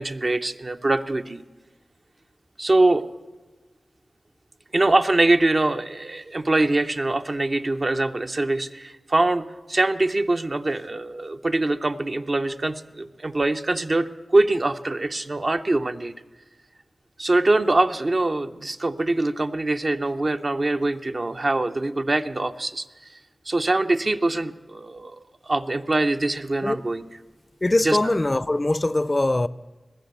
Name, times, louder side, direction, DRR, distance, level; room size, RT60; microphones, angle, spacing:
voice 1, 0.0-1.4 2.6-3.0 4.7-16.1 17.2-22.8 23.5-25.2 25.5-27.0 27.8-28.0, right 2 dB, 50° right, 0.6 m, -23 dB
voice 2, 27.6-29.5, left 2 dB, 30° left, 0.4 m, -22 dB
20.0 x 6.8 x 7.9 m
cardioid pair, 45°, 0 cm